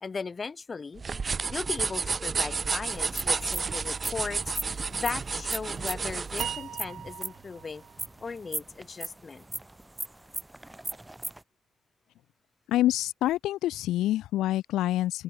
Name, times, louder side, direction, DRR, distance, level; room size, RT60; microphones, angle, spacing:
voice 1, 0.0-1.0 1.5-7.8 8.2-9.4, left 4 dB, 35° left, 1.9 m, -37 dB
sound 1, 1.0-6.6, right 4 dB, 35° right, 0.9 m, -31 dB
sound 2, 2.9-11.4, right 1 dB, 10° right, 3.2 m, -38 dB
sound 3, 6.4-9.6, right 10 dB, 65° right, 2.5 m, -41 dB
voice 2, 12.7-15.2, left 14 dB, 85° left, 0.8 m, -26 dB
cardioid pair, 90°, 0 cm